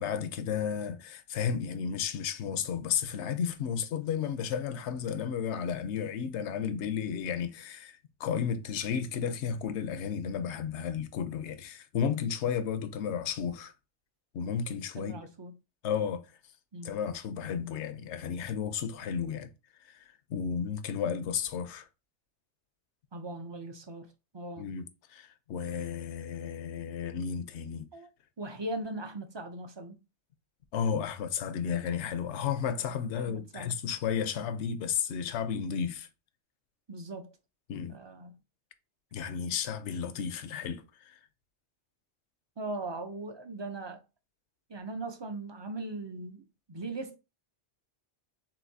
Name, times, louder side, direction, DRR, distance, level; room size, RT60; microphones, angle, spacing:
voice 1, 0.0-13.7 14.3-15.2 15.8-16.2 16.8-19.5 19.8-20.0 20.3-21.9 24.6-27.9 30.7-36.1 37.7-38.0 39.1-41.2, left 7 dB, 75° left, 0.9 m, -33 dB
voice 2, 14.9-15.5 16.7-16.9 23.1-24.1 24.3-24.7 27.9-28.1 28.4-30.0 33.1-33.7 36.9-37.3 37.9-38.3 42.6-44.0 44.7-47.2, right 2 dB, 35° right, 0.4 m, -39 dB
7.3 x 2.7 x 2.7 m
omnidirectional pair, 1.2 m